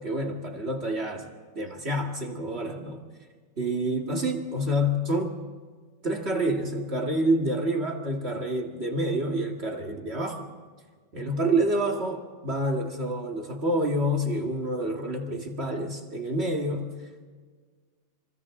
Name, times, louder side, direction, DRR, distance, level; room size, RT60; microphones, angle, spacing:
voice 1, 0.0-3.0 3.6-5.3 6.0-10.5 11.1-16.9, right 1 dB, 60° right, 2 dB, 2.3 m, -28 dB
28.0 x 27.0 x 3.8 m, 1.5 s
omnidirectional pair, 1.3 m